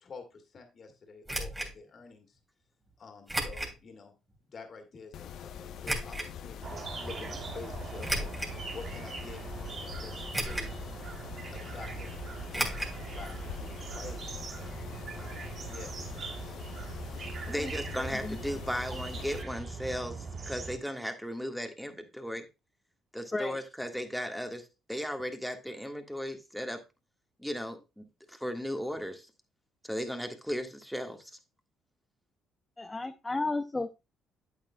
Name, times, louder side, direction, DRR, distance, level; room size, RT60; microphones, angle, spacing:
voice 1, 0.0-2.4 3.0-4.1 4.5-8.3 8.7-9.4 9.8-10.8 11.5-12.1 12.5-14.4 15.1-15.9, left 4 dB, 50° left, 2.1 m, -48 dB
sound 1, 1.3-1.7 3.3-3.8 4.3-4.4 5.8-6.3 8.0-8.6 9.2-9.3 10.3-10.8 11.1-11.2 12.5-13.0 13.2-13.3 13.6-13.7, right 1 dB, 15° right, 2.8 m, -33 dB
Mechanisms, 5.1-19.4, left 8 dB, 70° left, 0.6 m, -44 dB
sound 2, 6.6-20.8, right 4 dB, 50° right, 1.5 m, -41 dB
voice 2, 17.5-22.5 23.1-26.8 27.4-29.3 29.8-31.3, equal, ahead, 1.7 m, -36 dB
voice 3, 32.8-34.0, left 2 dB, 20° left, 0.6 m, -33 dB
8.8 x 8.3 x 2.3 m
supercardioid pair, 70°, 0 cm